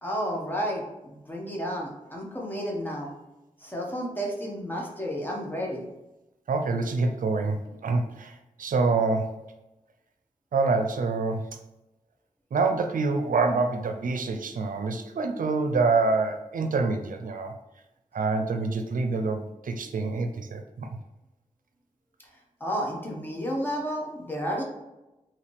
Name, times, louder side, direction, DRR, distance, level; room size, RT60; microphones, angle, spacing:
voice 1, 0.0-3.1 3.6-5.9 22.6-24.6, equal, 15° left, -2 dB, 1.2 m, -31 dB
voice 2, 6.5-9.4 10.5-11.6 12.5-17.5 18.1-20.9, right 3 dB, 80° right, 6 dB, 0.5 m, -26 dB
4.9 x 2.9 x 3.3 m, 0.98 s
wide cardioid pair, 75°, 14 cm